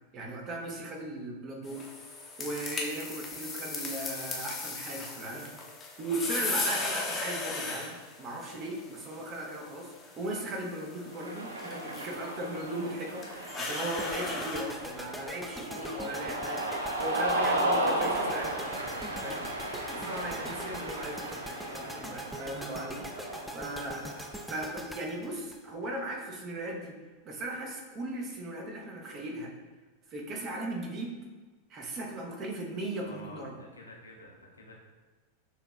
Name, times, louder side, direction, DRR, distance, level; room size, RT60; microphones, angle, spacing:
voice 1, 0.1-1.9 2.4-5.5 6.0-18.7 19.2-24.1 24.5-26.9 27.2-29.5 30.1-31.2 31.7-33.6, right 1 dB, 30° right, 0 dB, 0.9 m, -37 dB
sound 1, 1.6-14.6, left 3 dB, 20° left, 0.8 m, -38 dB
Cheering, 11.1-24.6, right 1 dB, 75° right, 0.5 m, -34 dB
sound 2, 14.0-26.2, equal, ahead, 0.3 m, -43 dB
voice 2, 33.0-34.7, left 2 dB, 75° left, -1 dB, 0.7 m, -50 dB
6.5 x 2.9 x 2.5 m, 1.3 s
figure-of-eight pair, 90°, 0 cm